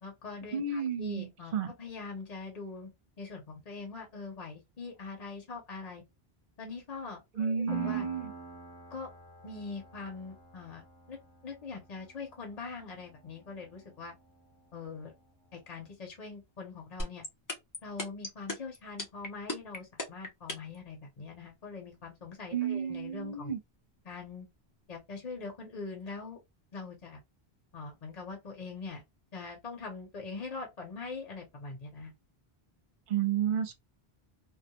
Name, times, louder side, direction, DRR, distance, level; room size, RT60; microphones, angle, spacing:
voice 1, 0.0-1.5 1.8-2.9 3.2-6.0 6.6-8.1 8.9-9.1 9.4-10.8 11.1-11.2 11.4-14.1 14.7-15.1 15.5-17.2 17.8-23.5 24.0-24.5 24.9-26.4 26.7-27.2 27.7-29.0 29.3-32.1, left 4 dB, 40° left, 0.9 m, -43 dB
voice 2, 0.5-1.7 7.4-8.3 22.5-23.6 33.1-33.7, right 7 dB, 55° right, 0.8 m, -31 dB
Piano, 7.7-15.1, right 3 dB, 20° right, 0.7 m, -47 dB
sound 1, 17.0-20.8, left 1 dB, 25° left, 0.6 m, -34 dB
2.3 x 2.1 x 2.8 m
omnidirectional pair, 1.1 m